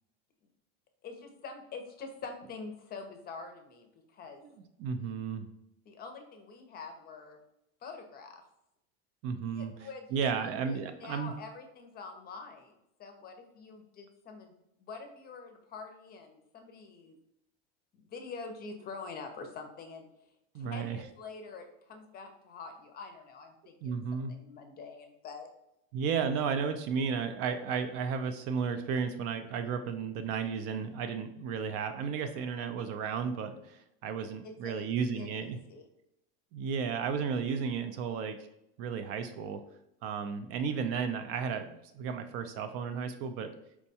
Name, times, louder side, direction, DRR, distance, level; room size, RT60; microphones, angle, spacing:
voice 1, 1.0-4.4 5.9-7.4 7.8-8.4 9.5-10.1 10.3-12.7 13.0-14.5 14.8-17.2 17.9-20.1 20.5-24.0 24.3-25.5 34.4-35.9, left 4 dB, 30° left, 5 dB, 0.5 m, -46 dB
voice 2, 4.8-5.5 9.2-11.3 20.5-21.0 23.8-24.3 25.9-35.6 36.5-38.4 38.8-39.6 40.0-43.5, right 6 dB, 50° right, 8 dB, 0.4 m, -33 dB
4.5 x 2.2 x 2.7 m, 0.80 s
supercardioid pair, 125°, 30 cm